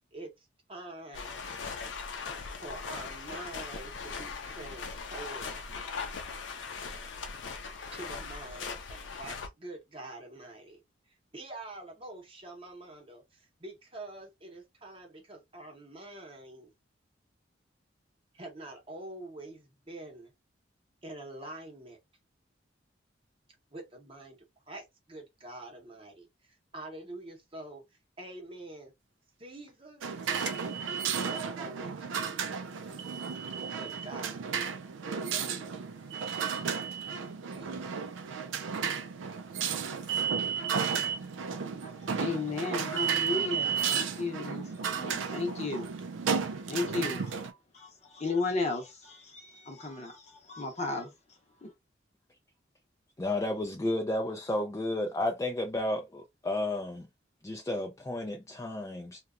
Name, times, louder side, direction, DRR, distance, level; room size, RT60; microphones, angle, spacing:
voice 1, 0.1-1.4 2.6-5.7 7.9-10.8 11.1-16.7 18.3-20.3 21.0-22.0 23.7-24.4 24.7-28.9 29.4-30.1 31.2-32.6 32.8-33.0 33.8-34.4 35.0-35.7 37.5-38.0, right 2 dB, 30° right, 0.8 m, -46 dB
sound 1, 1.1-9.5, left 5 dB, 75° left, 0.5 m, -39 dB
sound 2, 30.0-47.5, right 6 dB, 85° right, 0.4 m, -34 dB
sound 3, 30.3-31.4 33.0-34.1 36.1-37.2 40.0-41.2 43.0-44.0, right 8 dB, 70° right, 0.7 m, -33 dB
voice 2, 41.8-46.0 46.3-51.1 51.6-51.7, left 3 dB, 35° left, 0.7 m, -35 dB
voice 3, 53.2-57.1 57.4-59.2, left 1 dB, 15° left, 0.3 m, -32 dB
2.8 x 2.2 x 2.4 m
head